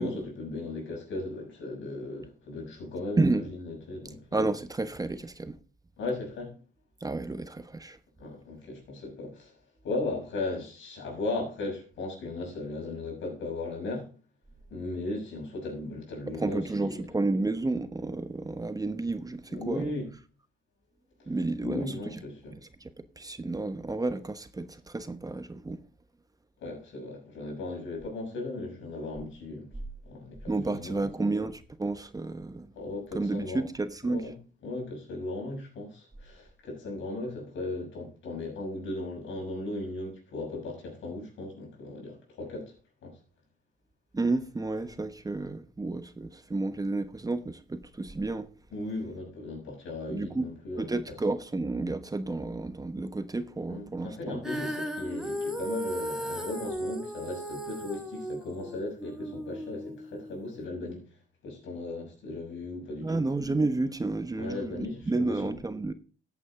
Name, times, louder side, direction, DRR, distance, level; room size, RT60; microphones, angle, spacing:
voice 1, 0.0-4.5 6.0-6.6 8.2-9.5 9.8-14.1 14.7-17.0 19.5-20.1 21.2-21.3 21.6-22.6 26.6-29.7 30.0-31.1 32.7-33.6 34.0-34.4 34.6-42.7 43.0-43.2 48.7-51.2 53.7-61.0 61.4-63.2 64.4-65.6, left 2 dB, 75° left, 6.5 m, -37 dB
voice 2, 3.2-3.5 4.3-5.6 7.0-8.0 16.4-19.9 21.3-22.2 22.8-22.9 23.2-25.8 30.5-32.7 33.1-34.2 44.1-48.5 50.1-50.5 50.8-54.4 63.0-65.9, right 2 dB, 20° right, 1.0 m, -31 dB
Female singing, 54.4-60.7, equal, 5° right, 1.7 m, -36 dB
14.0 x 8.5 x 3.7 m
cardioid pair, 90°, 20 cm